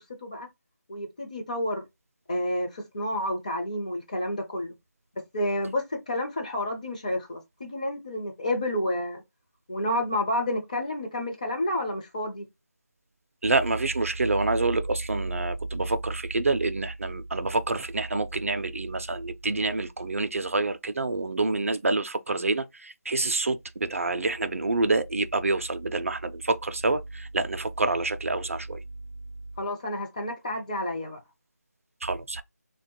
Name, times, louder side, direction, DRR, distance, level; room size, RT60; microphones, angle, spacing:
voice 1, 0.9-1.8 2.3-4.7 5.3-9.2 9.7-12.4 29.6-31.2, left 1 dB, 25° left, 0.6 m, -30 dB
voice 2, 13.4-28.8 32.0-32.4, right 3 dB, 50° right, 0.3 m, -27 dB
2.9 x 2.2 x 2.7 m
figure-of-eight pair, 165°, 9 cm